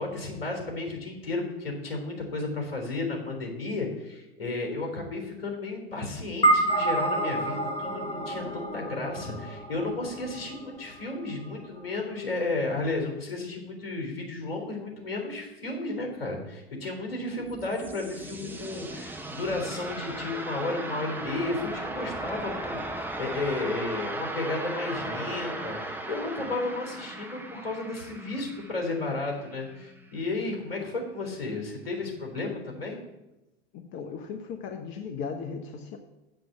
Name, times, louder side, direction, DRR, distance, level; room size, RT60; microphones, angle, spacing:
voice 1, 0.0-33.0, left 2 dB, 75° left, 1 dB, 3.6 m, -33 dB
sound 1, 6.4-11.0, right 2 dB, 20° left, 1.6 m, -28 dB
sound 2, 17.5-30.1, right 2 dB, 5° right, 1.4 m, -37 dB
voice 2, 33.7-36.0, left 6 dB, 40° left, 5 dB, 1.0 m, -37 dB
7.8 x 7.8 x 7.4 m, 0.96 s
figure-of-eight pair, 85°, 30 cm